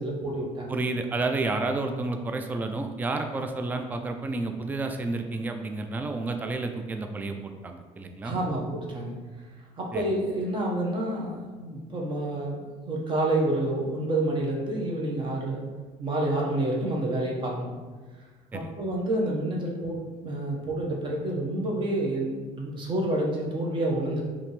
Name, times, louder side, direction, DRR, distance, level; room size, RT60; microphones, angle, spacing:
voice 1, 0.0-0.8 8.2-9.2 9.8-15.6 16.0-17.8 18.5-24.3, right 1 dB, 35° right, -1 dB, 1.0 m, -28 dB
voice 2, 0.7-8.4 9.9-10.0 18.5-18.7, right 3 dB, 10° right, 5 dB, 0.3 m, -30 dB
5.1 x 2.8 x 3.1 m, 1.4 s
cardioid pair, 130°, 14 cm